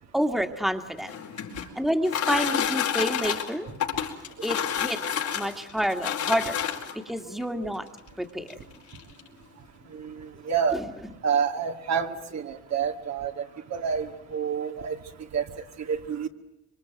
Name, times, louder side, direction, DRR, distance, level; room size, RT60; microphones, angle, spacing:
voice 1, 0.1-1.1 1.8-3.7 4.4-5.0 5.3-6.6 7.1-7.9 8.2-8.5, equal, ahead, 6 dB, 2.2 m, -28 dB
sound 1, 0.9-7.1 8.0-8.1 8.5-8.6 8.9-9.3, left 9 dB, 75° left, 4.7 m, -29 dB
voice 2, 9.9-10.8 11.2-13.4 13.7-15.0 15.3-15.4 15.9-16.3, right 7 dB, 60° right, 4 dB, 2.5 m, -28 dB
26.5 x 24.0 x 9.4 m, 0.86 s
cardioid pair, 90°, 30 cm